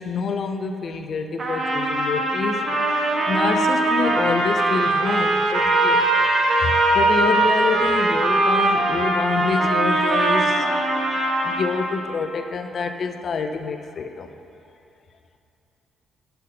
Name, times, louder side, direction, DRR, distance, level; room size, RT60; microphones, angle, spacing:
voice 1, 0.0-2.7 3.3-6.0 6.6-10.9 11.4-14.3, left 5 dB, 50° left, 7 dB, 0.5 m, -27 dB
Trumpet, 1.4-11.8, right 2 dB, 45° right, 1.3 m, -21 dB
Trumpet 2, 2.6-12.3, right 4 dB, 65° right, 0.6 m, -33 dB
6.8 x 5.2 x 5.4 m, 2.6 s
cardioid pair, 90°, 0 cm